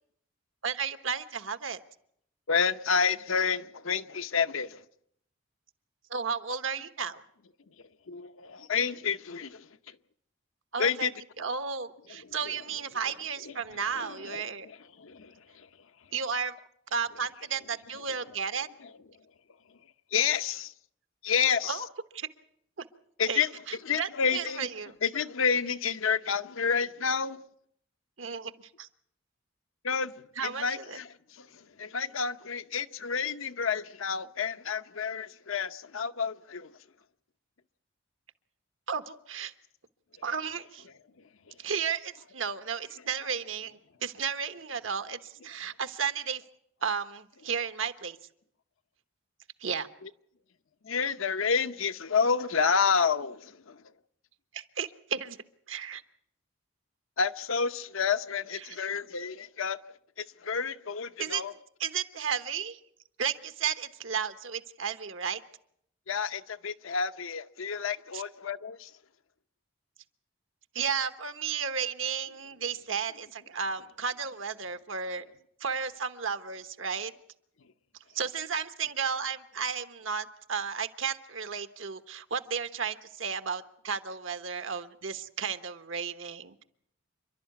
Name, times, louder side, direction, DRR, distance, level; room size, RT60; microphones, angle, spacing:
voice 1, 0.6-1.8 6.1-7.2 10.7-11.1 11.4-14.7 16.1-16.6 16.9-18.7 21.6-21.9 22.1-22.3 23.3-23.4 23.7-24.9 28.2-28.9 30.4-31.0 38.9-39.5 40.2-40.9 41.6-46.4 46.8-48.2 49.6-49.9 54.5-55.4 55.7-56.0 58.6-58.8 61.2-61.4 61.8-62.8 63.2-65.4 68.1-68.2 70.7-75.2 75.6-77.1 78.1-86.6, right 6 dB, 75° right, 1.2 m, -33 dB
voice 2, 2.5-4.8 8.1-9.7 10.8-11.1 12.2-12.4 13.4-13.5 13.9-15.7 20.1-20.7 21.2-21.8 23.2-23.5 23.8-24.7 25.0-27.4 29.8-30.1 30.4-36.7 50.8-53.8 57.2-59.8 60.2-61.5 66.1-68.9, left 6 dB, 85° left, 0.8 m, -29 dB
28.0 x 12.0 x 9.3 m
head